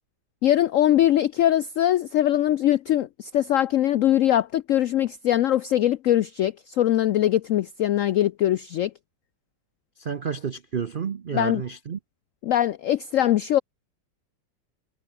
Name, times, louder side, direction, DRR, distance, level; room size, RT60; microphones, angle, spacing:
voice 1, 0.4-8.9 11.3-11.6 12.4-13.6, left 12 dB, 85° left, 0.7 m, -22 dB
voice 2, 10.0-12.0, right 7 dB, 70° right, 0.4 m, -30 dB
omnidirectional pair, 1.9 m